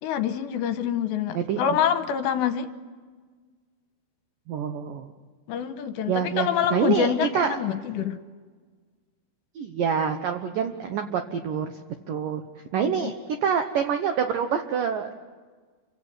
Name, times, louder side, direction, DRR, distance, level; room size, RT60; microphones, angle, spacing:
voice 1, 0.0-2.7 5.5-8.2 12.8-13.1, left 8 dB, 75° left, 9 dB, 3.0 m, -26 dB
voice 2, 4.5-5.1 6.1-7.6 9.6-11.7 12.1-12.4 12.7-13.1 13.4-15.2, right 7 dB, 75° right, 7 dB, 1.9 m, -26 dB
29.5 x 24.5 x 8.2 m, 1.5 s
omnidirectional pair, 5.5 m